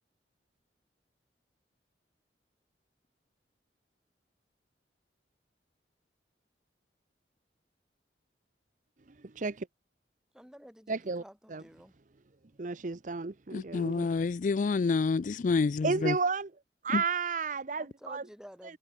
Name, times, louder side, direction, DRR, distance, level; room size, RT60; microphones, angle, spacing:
voice 1, 9.2-9.7 10.9-11.2 11.5-11.6 12.6-14.1 15.8-16.5 16.8-18.2, right 4 dB, 45° right, 0.7 m, -32 dB
voice 2, 10.3-11.9 17.8-18.8, equal, 5° right, 2.9 m, -51 dB
voice 3, 13.5-16.2 16.9-17.0, left 4 dB, 45° left, 0.3 m, -28 dB
head